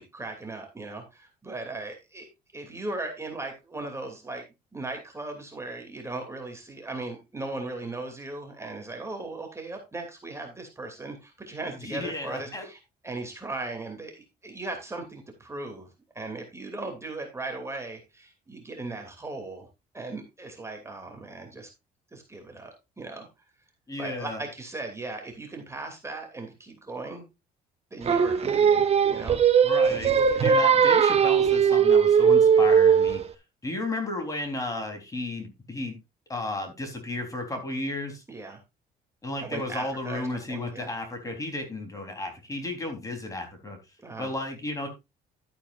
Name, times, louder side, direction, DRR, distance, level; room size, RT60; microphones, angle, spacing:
voice 1, 0.0-2.3 2.5-4.4 4.7-15.9 16.1-19.7 19.9-21.7 22.1-23.3 24.0-27.2 27.9-29.4 29.9-30.7 38.3-38.6 39.4-40.9 44.0-44.3, right 2 dB, 15° right, 3 dB, 2.8 m, -38 dB
voice 2, 11.8-12.7 23.9-24.4 29.6-30.1 30.4-33.2 33.6-36.0 36.3-38.2 39.2-43.8 44.2-44.9, left 2 dB, 20° left, 4 dB, 3.7 m, -33 dB
Singing, 28.1-33.3, right 7 dB, 35° right, 1.2 m, -19 dB
12.0 x 8.8 x 2.5 m, 0.24 s
cardioid pair, 110°, 17 cm